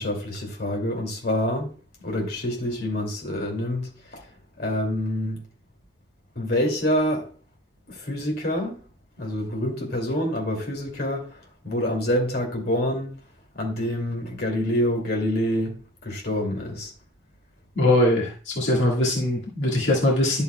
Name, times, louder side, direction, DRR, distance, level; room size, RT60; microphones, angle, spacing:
voice 1, 0.0-1.7 2.0-4.2 4.6-5.4 6.4-7.3 7.9-8.8 9.2-13.1 13.5-16.9, left 1 dB, 55° left, 2.5 m, -27 dB
voice 2, 17.8-18.3 18.6-20.4, left 1 dB, 80° left, 1.8 m, -21 dB
11.0 x 6.9 x 2.3 m
head